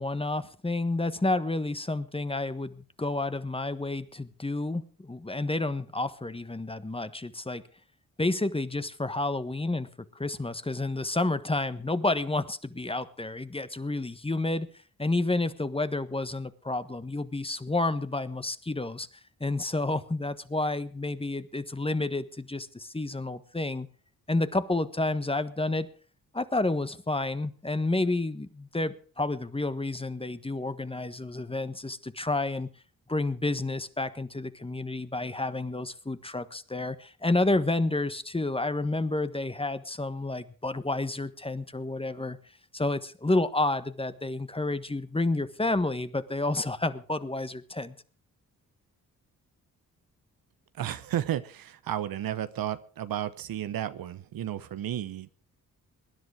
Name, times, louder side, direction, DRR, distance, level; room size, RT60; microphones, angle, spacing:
voice 1, 0.0-7.6 8.2-9.9 10.1-14.7 15.0-19.1 19.4-23.9 24.3-25.9 26.3-32.7 33.1-42.4 42.7-47.9, left 2 dB, 15° left, 1.3 m, -30 dB
voice 2, 50.7-55.3, right 11 dB, 75° right, 1.1 m, -33 dB
20.0 x 10.5 x 4.9 m
supercardioid pair, 55°, 35 cm